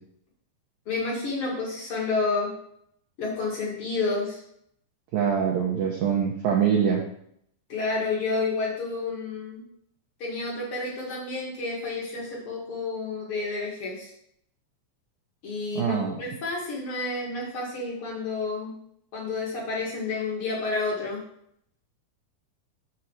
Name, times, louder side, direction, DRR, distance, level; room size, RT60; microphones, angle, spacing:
voice 1, 0.8-2.5 3.2-4.4 7.7-9.6 10.2-14.1 15.4-18.7 19.1-21.2, left 3 dB, 50° left, -4 dB, 1.6 m, -30 dB
voice 2, 5.1-7.0 15.8-16.2, right 7 dB, 90° right, -1 dB, 2.0 m, -24 dB
7.4 x 4.3 x 6.4 m, 0.70 s
omnidirectional pair, 5.4 m